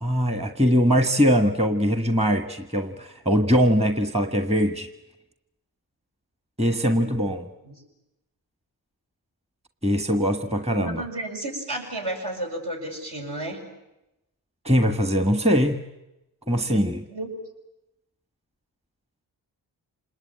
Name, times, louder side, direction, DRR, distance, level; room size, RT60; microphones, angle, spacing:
voice 1, 0.0-4.9 6.6-7.5 9.8-11.0 14.6-15.8 16.5-17.0, equal, 15° right, 8 dB, 1.5 m, -22 dB
voice 2, 10.7-13.6 16.7-17.3, right 1 dB, 65° right, -1 dB, 7.6 m, -33 dB
27.0 x 20.0 x 9.0 m, 0.94 s
supercardioid pair, 45°, 44 cm